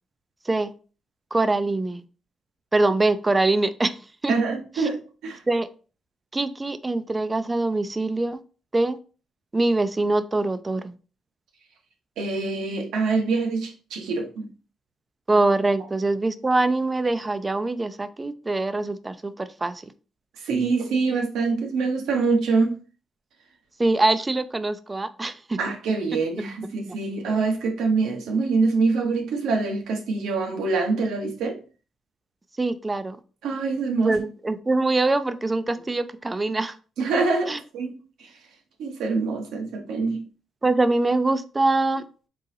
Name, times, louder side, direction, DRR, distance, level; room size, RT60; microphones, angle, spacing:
voice 1, 1.3-2.0 2.7-3.9 4.2-4.3 4.8-4.9 5.5-5.7 6.3-8.4 8.7-9.0 9.5-10.9 15.3-19.9 23.8-25.6 32.6-33.2 34.1-36.7 37.5-37.6 40.6-42.0, right 2 dB, 20° right, 12 dB, 0.4 m, -23 dB
voice 2, 4.3-5.4 12.2-14.5 20.4-22.8 25.6-31.6 33.4-34.2 37.0-37.9 38.2-38.3 38.8-40.2, right 4 dB, 80° right, 2 dB, 1.0 m, -25 dB
3.8 x 3.8 x 2.7 m, 0.37 s
cardioid pair, 90°, 0 cm